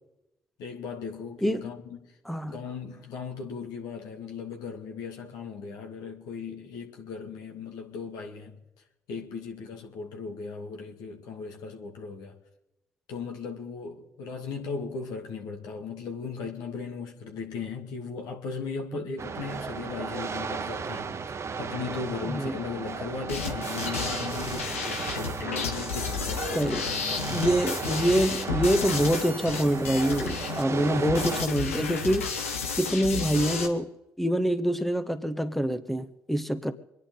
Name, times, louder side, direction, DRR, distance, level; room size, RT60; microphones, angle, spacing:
voice 1, 0.6-2.0 2.5-8.6 9.1-12.4 13.1-27.5, left 5 dB, 70° left, 2.4 m, -37 dB
sound 1, 19.2-31.5, right 5 dB, 40° right, 1.3 m, -35 dB
voice 2, 22.2-22.5 26.5-26.9 27.3-32.3 32.8-33.9 34.2-36.7, right 1 dB, ahead, 1.3 m, -26 dB
sound 2, 23.3-33.7, left 6 dB, 90° left, 1.2 m, -32 dB
26.0 x 10.5 x 3.9 m
hypercardioid pair, 40°, 7 cm